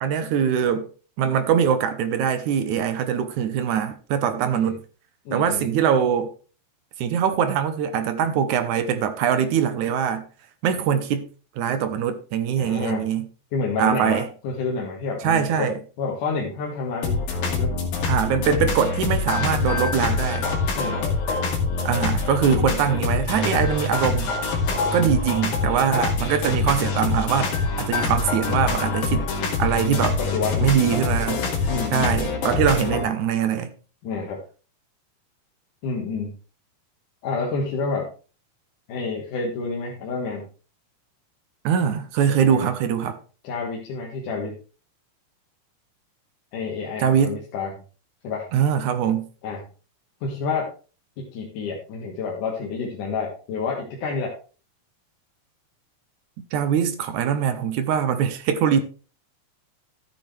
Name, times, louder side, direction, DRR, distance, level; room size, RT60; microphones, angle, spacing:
voice 1, 0.0-0.9 1.2-4.8 5.3-6.3 7.0-10.2 10.6-11.3 11.6-13.3 13.8-14.3 15.2-15.7 18.1-20.5 21.8-24.3 24.9-27.5 27.8-29.3 29.6-30.2 30.6-33.7 41.6-43.2 47.0-47.4 48.5-49.3 56.4-58.8, right 8 dB, 70° right, 2.1 m, -22 dB
voice 2, 5.3-5.7 12.6-13.0 13.5-15.7 16.0-17.2 17.5-17.8 20.7-21.2 29.8-30.7 31.7-32.1 34.0-34.4 35.8-36.3 37.2-38.1 38.9-40.5 42.4-42.7 43.4-44.6 46.5-47.8 48.2-48.5 49.4-49.6 50.2-50.7 51.2-54.4, left 4 dB, 65° left, 3.0 m, -29 dB
sound 1, 17.0-33.0, left 4 dB, 80° left, 4.1 m, -25 dB
13.0 x 8.4 x 3.3 m
omnidirectional pair, 4.0 m